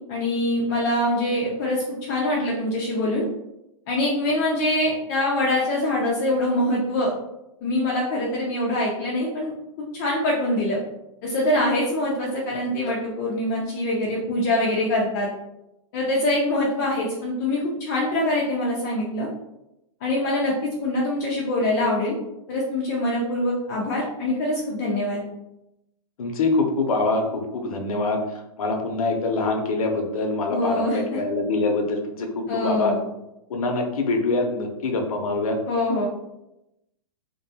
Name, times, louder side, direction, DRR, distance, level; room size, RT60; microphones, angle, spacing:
voice 1, 0.1-3.2 3.9-7.1 7.6-9.5 9.9-10.8 11.2-15.3 15.9-19.3 20.0-20.5 20.8-22.2 22.5-25.2 30.5-31.2 32.5-33.0 35.7-36.1, left 1 dB, 30° left, -3 dB, 0.4 m, -24 dB
voice 2, 26.2-28.2 28.6-32.9 33.5-35.6, left 3 dB, 85° left, 4 dB, 0.6 m, -24 dB
2.5 x 2.2 x 2.7 m, 0.88 s
hypercardioid pair, 160°, 18 cm